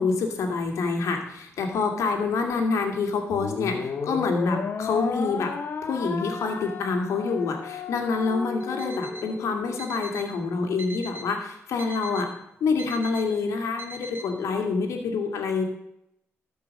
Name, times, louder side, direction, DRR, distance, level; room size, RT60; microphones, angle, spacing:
voice 1, 0.0-5.6 5.8-12.3 12.6-15.6, left 4 dB, 85° left, 3 dB, 2.3 m, -27 dB
sound 1, 3.3-9.8, left 5 dB, 50° left, 1.1 m, -33 dB
Alarm, 8.6-9.3 9.8-10.3 10.8-11.3 11.8-12.3 12.8-13.3 13.8-14.3, right 1 dB, 50° right, 1.9 m, -41 dB
13.0 x 5.5 x 7.6 m, 0.79 s
cardioid pair, 85°, 5 cm